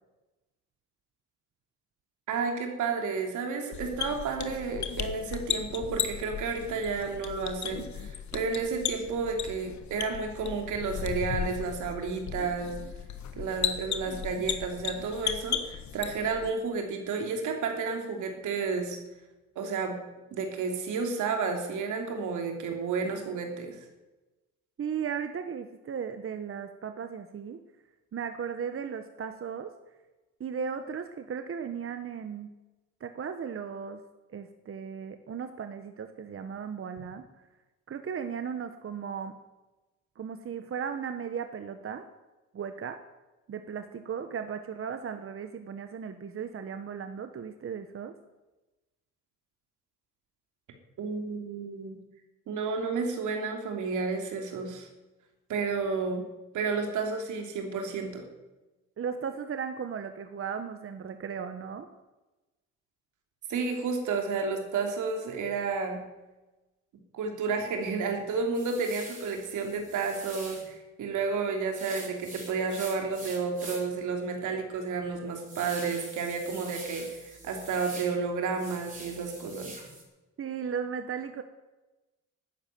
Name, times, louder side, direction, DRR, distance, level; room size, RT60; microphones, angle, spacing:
voice 1, 2.3-12.8 13.3-19.0 19.5-20.0 20.3-23.8 51.0-51.9 52.5-54.9 55.5-56.2 56.5-58.2 63.5-66.0 67.1-79.8, right 4 dB, 80° right, 4 dB, 3.0 m, -31 dB
sound 1, 3.7-16.5, left 9 dB, 65° left, 1.6 m, -36 dB
voice 2, 24.8-27.6 28.1-29.7 30.4-32.5 33.0-34.0 34.3-37.2 37.9-39.4 40.2-42.1 42.5-43.0 43.5-48.1 59.0-61.9 80.4-81.4, right 7 dB, 45° right, 8 dB, 1.2 m, -36 dB
sound 2, 68.5-70.7 71.7-74.0 74.4-74.5 75.0-78.1 78.5-80.0, right 2 dB, 25° right, 5.3 m, -45 dB
12.5 x 9.9 x 9.2 m, 1.1 s
cardioid pair, 90°, 30 cm